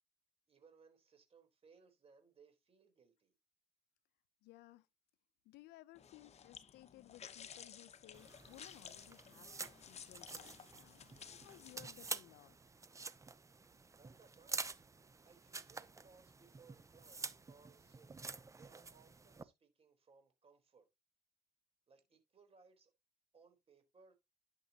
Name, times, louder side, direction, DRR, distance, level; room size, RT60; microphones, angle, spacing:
voice 1, 0.5-3.3 13.7-14.7 15.2-20.9 21.9-22.9 23.3-24.1, right 5 dB, 35° right, 3.9 m, -66 dB
voice 2, 4.4-4.9 5.4-11.1 11.4-12.6, left 17 dB, 85° left, 0.7 m, -60 dB
sound 1, 5.9-12.1, left 7 dB, 40° left, 1.1 m, -55 dB
sound 2, 8.1-19.4, right 4 dB, 20° right, 0.7 m, -49 dB
11.0 x 7.0 x 2.9 m
cardioid pair, 110°, 17 cm